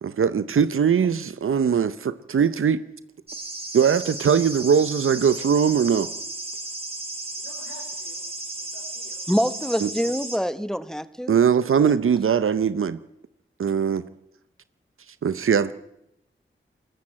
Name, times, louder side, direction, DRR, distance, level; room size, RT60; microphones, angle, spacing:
voice 1, 0.0-2.8 3.7-6.1 9.8-9.9 11.3-13.0 13.6-14.0 15.2-15.7, right 7 dB, 80° right, 0.8 m, -21 dB
sound 1, 3.3-10.4, right 2 dB, 30° right, 5.0 m, -34 dB
voice 2, 7.4-8.3 8.6-9.2, left 2 dB, 60° left, 5.4 m, -48 dB
voice 3, 9.3-11.4 11.8-11.9, equal, ahead, 1.4 m, -25 dB
21.0 x 20.5 x 8.7 m
wide cardioid pair, 70°, 21 cm